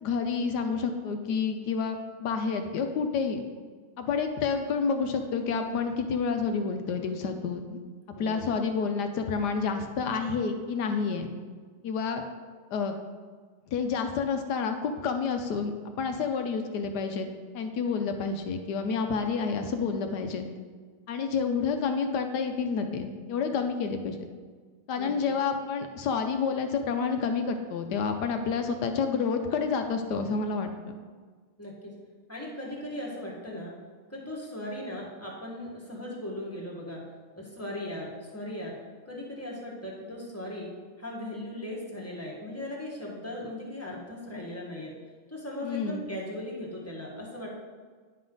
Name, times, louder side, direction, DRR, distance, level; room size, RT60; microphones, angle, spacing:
voice 1, 0.0-3.4 4.0-7.8 8.2-11.3 11.8-12.2 12.7-12.9 13.7-17.3 17.5-20.4 21.1-24.2 24.9-30.9 45.6-46.1, left 5 dB, 70° left, 6 dB, 1.0 m, -29 dB
voice 2, 8.1-8.5 25.0-25.1 31.6-31.9 32.3-33.7 34.1-37.0 37.4-38.8 39.1-40.7 41.0-44.9 45.3-47.6, left 1 dB, 10° left, -4 dB, 1.2 m, -38 dB
9.8 x 5.5 x 3.8 m, 1.5 s
omnidirectional pair, 2.2 m